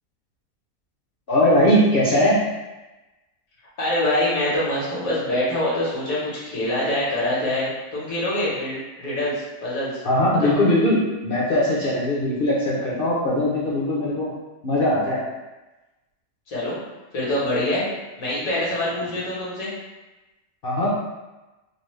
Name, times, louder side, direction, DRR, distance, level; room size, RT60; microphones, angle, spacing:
voice 1, 1.3-2.4 10.0-14.3 14.6-15.2 20.6-20.9, left 1 dB, 55° left, -6 dB, 0.7 m, -20 dB
voice 2, 3.8-9.9 10.4-10.5 16.5-16.8 17.1-17.8 18.2-19.7, left 1 dB, 85° left, -7 dB, 1.6 m, -25 dB
3.9 x 2.0 x 3.1 m, 1.1 s
omnidirectional pair, 1.4 m